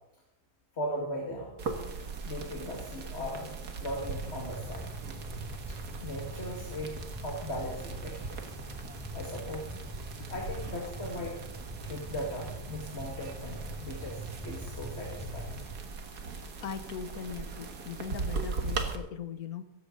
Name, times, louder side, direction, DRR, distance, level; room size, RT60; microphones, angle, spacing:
voice 1, 0.7-1.5 2.3-4.9 5.7-8.5 9.1-9.8 10.3-11.4 11.8-15.6, left 1 dB, 40° left, -1 dB, 2.3 m, -38 dB
sound 1, 1.6-19.0, right 4 dB, 65° right, 2.0 m, -40 dB
sound 2, 3.9-15.8, right 1 dB, ahead, 4.0 m, -43 dB
voice 2, 16.6-19.6, left 7 dB, 65° left, 11 dB, 1.4 m, -40 dB
16.5 x 15.0 x 3.9 m, 0.87 s
omnidirectional pair, 1.8 m